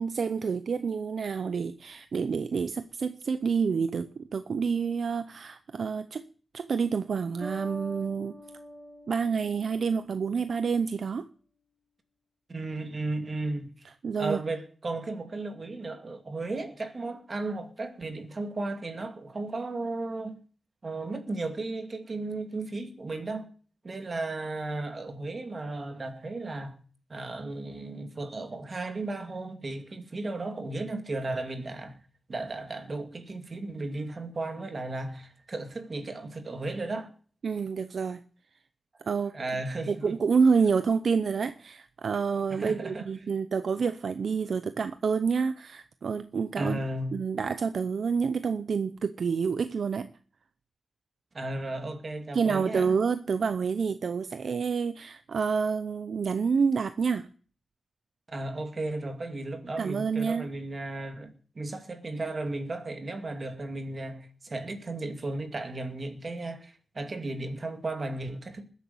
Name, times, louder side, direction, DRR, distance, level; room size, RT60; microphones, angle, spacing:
voice 1, 0.0-6.2 6.5-8.3 9.1-11.3 14.0-14.4 37.4-38.2 39.0-39.4 39.9-46.8 47.1-50.1 52.3-57.3 59.8-60.4, right 5 dB, 65° right, 0.6 m, -28 dB
Bass guitar, 7.4-10.9, right 1 dB, 15° right, 1.8 m, -44 dB
voice 2, 12.5-13.7 14.2-20.4 20.8-23.5 23.8-26.8 27.1-32.0 32.3-37.1 39.3-40.1 42.5-43.1 46.6-47.2 51.3-52.9 58.3-68.7, right 2 dB, 35° right, 2.2 m, -35 dB
20.0 x 8.3 x 7.0 m
wide cardioid pair, 160°, 0 cm